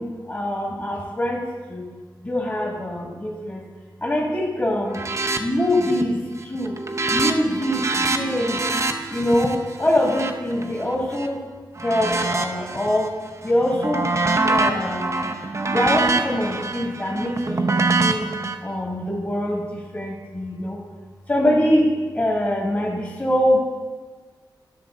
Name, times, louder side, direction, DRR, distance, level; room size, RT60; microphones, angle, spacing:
voice 1, 0.0-1.8 2.2-3.6 4.0-5.0 5.4-6.8 7.1-8.6 9.1-11.4 11.8-13.1 13.4-15.3 15.7-18.3 18.6-20.8 21.3-23.6, left 1 dB, 25° left, -2 dB, 2.2 m, -24 dB
sound 1, 4.9-5.4 5.7-6.1 6.4-11.3 11.8-13.1 13.5-18.5, right 3 dB, 40° right, 0.7 m, -25 dB
11.0 x 5.8 x 3.9 m, 1.4 s
cardioid pair, 60°, 8 cm